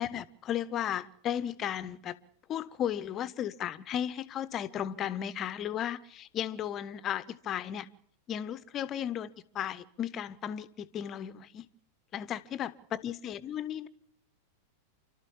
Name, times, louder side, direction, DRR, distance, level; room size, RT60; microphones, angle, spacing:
voice 1, 0.0-2.2 2.5-7.9 8.3-9.3 9.5-11.7 12.1-13.9, left 10 dB, 30° left, 1.2 m, -35 dB
29.5 x 13.0 x 7.3 m
figure-of-eight pair, 90°, 0 cm